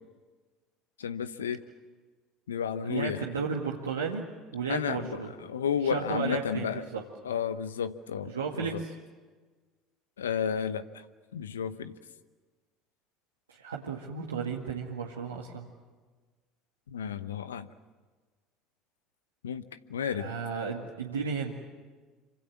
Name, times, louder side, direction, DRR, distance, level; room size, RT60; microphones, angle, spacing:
voice 1, 1.0-1.6 2.5-3.2 4.7-5.2 5.5-6.8 7.2-8.3 8.6-8.8 10.2-10.8 11.3-11.9 16.9-17.7 19.4-19.6 19.9-20.3, left 8 dB, 85° left, 12 dB, 0.9 m, -32 dB
voice 2, 2.8-4.2 4.5-5.3 5.8-7.0 8.2-8.9 13.5-15.7 20.2-21.6, right 5 dB, 90° right, -2 dB, 1.9 m, -33 dB
27.5 x 25.5 x 7.3 m, 1.4 s
hypercardioid pair, 65°, 0 cm